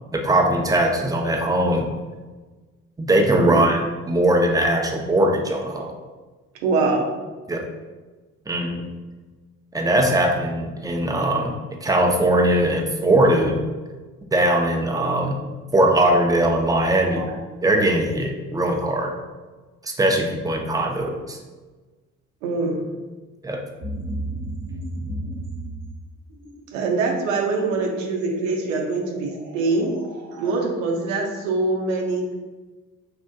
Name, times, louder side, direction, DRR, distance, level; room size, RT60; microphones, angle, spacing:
voice 1, 0.1-1.9 3.0-5.9 7.5-7.7 8.5-8.9 9.7-11.5 11.8-13.6 14.3-15.4 15.7-17.3 17.6-19.2 19.8-21.4 23.4-23.6, right 1 dB, 10° right, 2 dB, 0.5 m, -20 dB
voice 2, 6.6-7.1 17.2-17.3 22.4-22.8 26.7-29.9 30.4-32.4, right 3 dB, 85° right, 0 dB, 0.5 m, -24 dB
sound 1, 23.8-30.7, right 1 dB, 50° right, 0.9 m, -35 dB
3.6 x 2.5 x 2.2 m, 1.3 s
hypercardioid pair, 50°, 39 cm